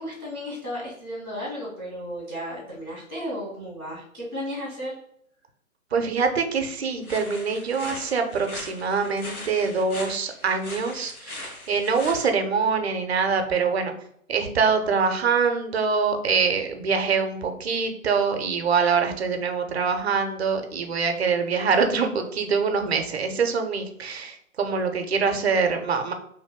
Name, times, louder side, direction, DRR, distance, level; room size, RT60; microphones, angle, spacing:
voice 1, 0.0-5.0, equal, 15° left, -10 dB, 0.5 m, -34 dB
voice 2, 5.9-13.9 14.3-26.1, right 5 dB, 50° right, 6 dB, 0.5 m, -24 dB
sound 1, 7.0-12.3, left 2 dB, 90° left, 1.0 m, -40 dB
3.1 x 2.2 x 3.4 m, 0.69 s
figure-of-eight pair, 140°, 42 cm